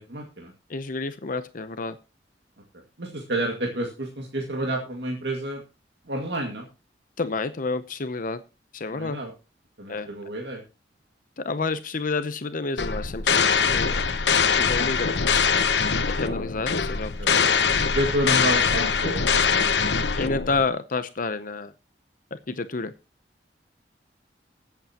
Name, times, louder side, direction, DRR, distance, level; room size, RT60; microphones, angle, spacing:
voice 1, 0.0-0.5 3.0-5.6 6.1-6.7 8.9-9.3 9.8-10.6 16.2-16.4 17.2-17.3 17.9-19.9, right 1 dB, 75° right, 1 dB, 2.1 m, -30 dB
voice 2, 0.7-2.0 7.2-8.4 8.7-9.2 9.9-10.1 11.4-14.0 14.5-15.2 16.1-17.5 20.2-21.7 22.3-22.9, left 3 dB, 50° left, 12 dB, 0.7 m, -29 dB
sound 1, 12.8-20.7, left 6 dB, 75° left, 1.0 m, -23 dB
20.5 x 8.1 x 2.9 m, 0.30 s
head